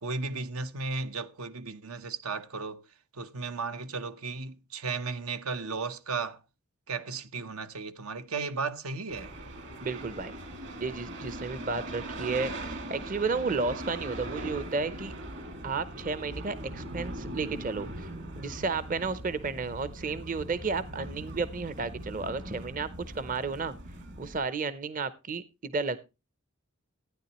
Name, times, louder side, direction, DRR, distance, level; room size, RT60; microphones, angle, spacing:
voice 1, 0.0-2.9 3.1-6.4 6.9-9.3, right 4 dB, 85° right, 1.0 m, -35 dB
sound 1, 9.1-24.4, right 1 dB, 55° right, 2.3 m, -40 dB
voice 2, 9.8-10.3 10.8-15.1 15.6-18.1 18.4-22.9 23.1-23.7 24.2-26.0, right 4 dB, 40° right, 0.6 m, -32 dB
15.0 x 9.7 x 3.0 m
head